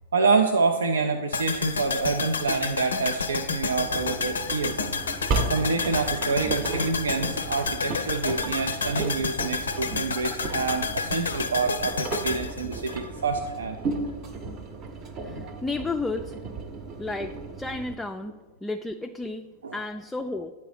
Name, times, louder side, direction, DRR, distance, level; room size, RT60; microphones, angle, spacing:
voice 1, 0.1-4.8 5.4-13.8 15.4-15.5 19.6-19.8, right 4 dB, 75° right, 5 dB, 0.4 m, -27 dB
sound 1, 1.3-13.5 13.8-13.9, left 5 dB, 80° left, 0.4 m, -30 dB
Engine, 3.8-17.9, right 3 dB, 40° right, 0.8 m, -35 dB
voice 2, 15.2-16.4 17.0-20.5, left 3 dB, 10° left, 5 dB, 0.3 m, -33 dB
8.9 x 4.1 x 4.9 m, 1.3 s
figure-of-eight pair, 95°, 0 cm